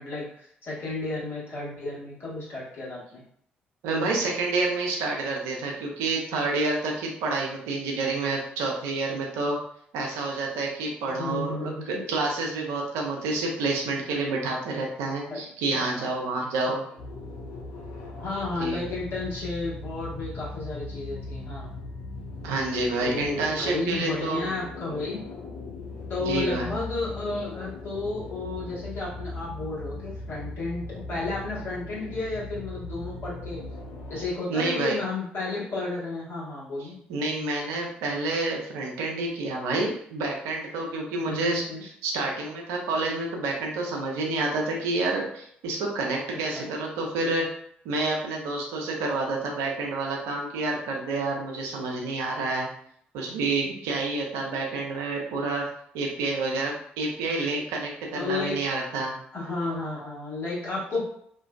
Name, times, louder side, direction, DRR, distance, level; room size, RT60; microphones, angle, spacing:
voice 1, 0.0-3.2 11.2-12.0 15.3-16.7 18.2-21.7 23.0-25.2 26.1-33.6 34.1-36.9 41.2-41.8 46.5-46.6 58.1-58.6 59.3-61.0, left 3 dB, 45° left, -7 dB, 1.3 m, -32 dB
voice 2, 3.8-9.6 9.9-16.8 18.6-18.8 22.4-24.5 26.3-26.7 34.5-35.0 37.1-47.5 47.8-52.7 53.1-55.6 55.9-59.1, right 3 dB, 65° right, 0 dB, 0.5 m, -28 dB
sound 1, 17.0-34.3, left 2 dB, 65° left, 0.4 m, -39 dB
2.5 x 2.2 x 2.2 m, 0.67 s
figure-of-eight pair, 40°, 5 cm